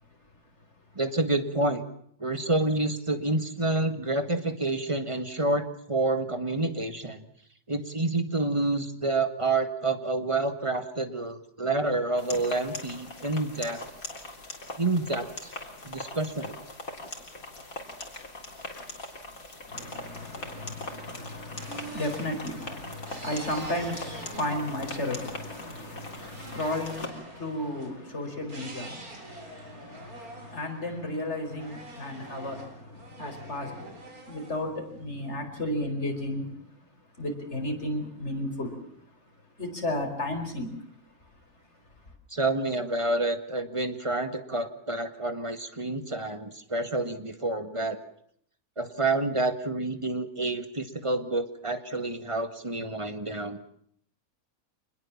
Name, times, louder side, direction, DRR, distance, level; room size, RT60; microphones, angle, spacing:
voice 1, 1.0-1.8 2.2-7.2 7.7-13.8 14.8-15.5 15.8-16.5 42.3-48.0 48.8-53.6, right 2 dB, 20° right, 1.9 m, -28 dB
sound 1, 12.2-27.1, left 2 dB, 70° left, 4.2 m, -41 dB
voice 2, 19.7-36.6 37.2-38.8 39.6-40.7, left 1 dB, 50° left, 5.2 m, -34 dB
sound 2, 20.8-25.7 26.2-27.9 28.5-31.2 31.6-35.3, right 2 dB, 85° right, 4.6 m, -46 dB
26.0 x 21.0 x 7.3 m
omnidirectional pair, 1.5 m